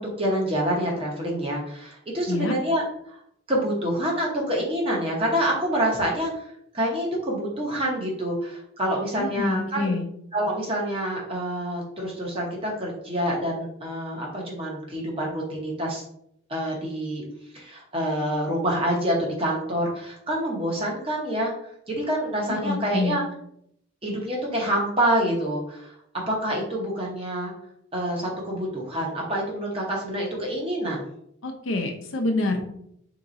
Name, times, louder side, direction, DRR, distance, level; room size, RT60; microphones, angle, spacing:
voice 1, 0.0-3.2 3.5-6.3 6.7-9.9 10.3-16.0 16.5-17.2 17.5-21.5 21.9-23.2 24.0-25.9 26.3-27.5 27.9-31.0, equal, 25° right, -2 dB, 0.9 m, -27 dB
voice 2, 9.2-10.1 22.5-23.2 31.4-32.6, left 2 dB, 65° left, 3 dB, 0.7 m, -27 dB
3.7 x 2.9 x 3.9 m, 0.73 s
head